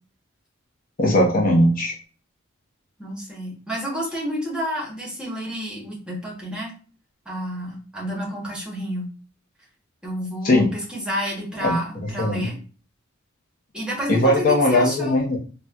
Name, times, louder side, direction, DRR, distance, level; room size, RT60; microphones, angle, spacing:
voice 1, 1.0-1.9 10.4-10.7 11.6-11.8 12.0-12.5 14.1-15.4, left 1 dB, 45° left, -1 dB, 0.6 m, -19 dB
voice 2, 3.0-6.7 7.3-9.1 10.0-12.5 13.7-15.2, equal, 5° right, -3 dB, 0.9 m, -30 dB
4.1 x 2.1 x 2.3 m, 0.37 s
head